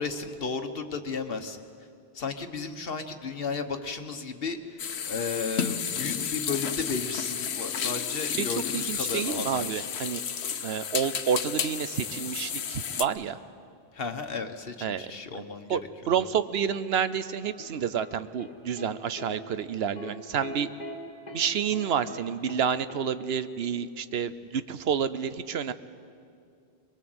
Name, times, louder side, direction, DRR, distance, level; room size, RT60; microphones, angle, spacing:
voice 1, 0.0-1.6 2.1-4.8 5.1-9.9 13.9-15.8 16.2-16.3, left 4 dB, 65° left, 7 dB, 1.5 m, -34 dB
sound 1, 4.8-13.0, left 7 dB, 90° left, 1.1 m, -32 dB
voice 2, 8.7-10.2 10.6-13.4 14.8-15.8 16.1-20.7 21.3-25.7, right 7 dB, 75° right, 13 dB, 1.0 m, -29 dB
sound 2, 17.4-18.9 19.2-19.4 20.0-20.1 20.4-20.9 21.3-21.4 21.7-22.2 22.5-22.6 22.9-23.0, left 2 dB, 40° left, 2.4 m, -41 dB
22.0 x 22.0 x 7.9 m, 2.4 s
omnidirectional pair, 1.1 m